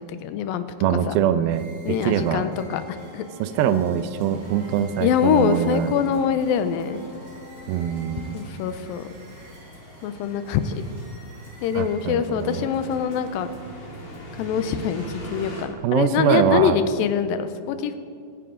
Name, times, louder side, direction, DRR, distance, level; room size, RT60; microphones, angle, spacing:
voice 1, 0.1-1.2 1.9-3.2 5.0-7.0 8.3-9.1 10.0-10.8 11.6-13.5 14.4-18.0, left 8 dB, 80° left, 10 dB, 2.4 m, -24 dB
voice 2, 0.8-2.4 3.4-5.9 7.7-8.4 11.7-12.7 15.8-16.8, right 9 dB, 80° right, 11 dB, 2.5 m, -23 dB
sound 1, 1.4-12.4, right 2 dB, 60° right, 4.4 m, -51 dB
Trumpet, 2.0-8.9, left 3 dB, ahead, 2.6 m, -46 dB
sound 2, 4.2-15.6, right 1 dB, 35° left, 2.6 m, -42 dB
22.0 x 9.4 x 3.8 m, 2.2 s
omnidirectional pair, 4.3 m